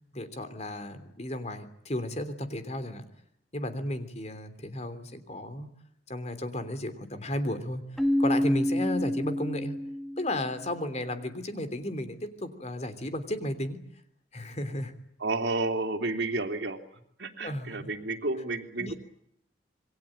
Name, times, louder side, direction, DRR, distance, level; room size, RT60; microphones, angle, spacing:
voice 1, 0.1-3.1 3.5-5.7 6.1-9.8 10.2-13.8 14.3-14.9 17.4-17.9 18.8-18.9, left 1 dB, 40° left, 11 dB, 3.2 m, -34 dB
Keyboard (musical), 8.0-10.6, left 1 dB, ahead, 2.0 m, -28 dB
voice 2, 15.2-16.8 17.2-18.9, right 2 dB, 80° right, 5 dB, 3.2 m, -31 dB
27.5 x 22.5 x 8.8 m, 0.74 s
head